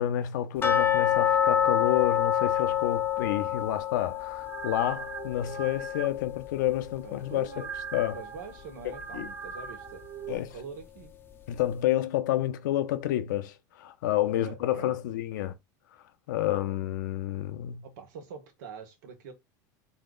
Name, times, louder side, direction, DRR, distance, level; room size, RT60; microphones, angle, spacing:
voice 1, 0.0-7.5 7.9-8.2 8.8-9.3 10.3-10.5 11.5-15.5 16.3-17.9, left 12 dB, 85° left, 0.8 m, -29 dB
sound 1, 0.6-7.5 7.8-7.9 8.4-8.5 9.0-9.1, left 10 dB, 20° left, 0.6 m, -28 dB
sound 2, 4.2-10.4, right 6 dB, 30° right, 0.6 m, -41 dB
voice 2, 7.0-7.7 8.1-10.0 10.3-11.1 14.3-14.9 17.8-19.3, right 5 dB, 80° right, 1.5 m, -44 dB
4.2 x 2.8 x 3.8 m
supercardioid pair, 130°, 10 cm